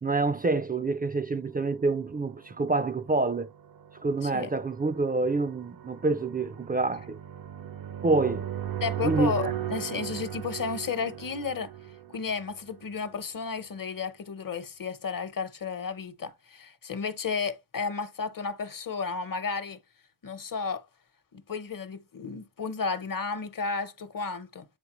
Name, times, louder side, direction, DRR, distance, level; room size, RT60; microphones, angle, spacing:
voice 1, 0.0-3.5 4.0-7.2 8.0-8.5 9.0-9.3, right 3 dB, 25° right, 0.4 m, -27 dB
sound 1, 2.2-13.0, right 11 dB, 70° right, 0.8 m, -38 dB
voice 2, 8.8-11.7 12.1-19.8 20.2-20.8 21.3-24.7, left 5 dB, 65° left, 0.9 m, -33 dB
8.3 x 3.9 x 3.0 m
wide cardioid pair, 70°, 36 cm